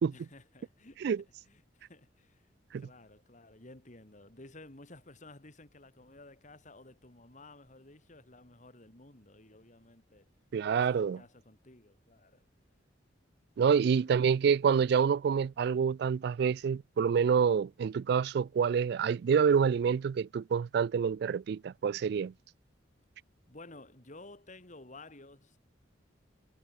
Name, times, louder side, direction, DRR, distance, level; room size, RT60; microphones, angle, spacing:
voice 1, 0.1-1.1 1.4-2.4 2.7-10.3 10.7-12.4 13.7-14.2 23.5-25.6, left 2 dB, 40° left, 2.8 m, -54 dB
voice 2, 10.5-11.2 13.6-22.3, right 6 dB, 60° right, 0.3 m, -27 dB
head